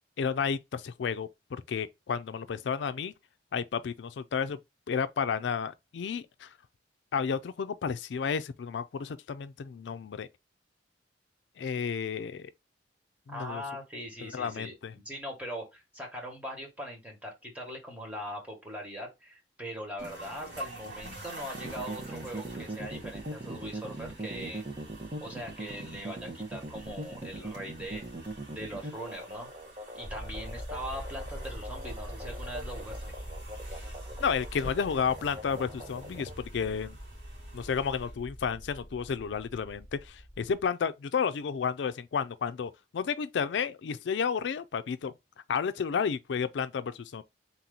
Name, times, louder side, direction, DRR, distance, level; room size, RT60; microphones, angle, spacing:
voice 1, 0.2-3.1 3.5-4.6 4.9-6.5 7.1-10.3 11.6-12.5 13.3-13.6 14.2-14.9 34.2-37.0 37.5-45.1 45.5-47.2, left 6 dB, 75° left, 0.4 m, -32 dB
voice 2, 13.3-24.6 25.2-28.0 28.5-29.5 29.9-33.0, equal, 10° right, 1.5 m, -41 dB
sound 1, 20.0-38.9, right 1 dB, 70° right, 2.8 m, -49 dB
sound 2, 21.5-36.3, right 1 dB, 30° right, 1.1 m, -41 dB
sound 3, 30.0-40.6, equal, 10° left, 1.3 m, -43 dB
4.0 x 2.9 x 3.8 m
head